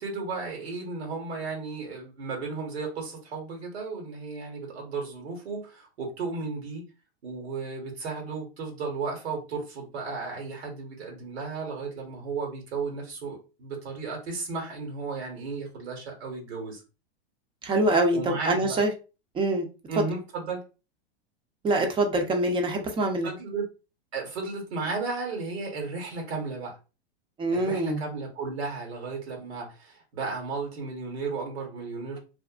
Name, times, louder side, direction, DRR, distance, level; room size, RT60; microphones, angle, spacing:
voice 1, 0.0-6.8 7.2-16.8 18.1-18.8 19.9-20.6 23.2-23.6 24.1-26.7 27.5-32.2, right 4 dB, 80° right, 1.2 m, -34 dB
voice 2, 17.6-18.9 19.3-19.7 20.0-20.1 21.6-23.3 27.4-28.0, right 2 dB, 15° right, 0.5 m, -24 dB
2.5 x 2.4 x 2.3 m
hypercardioid pair, 120°, 32 cm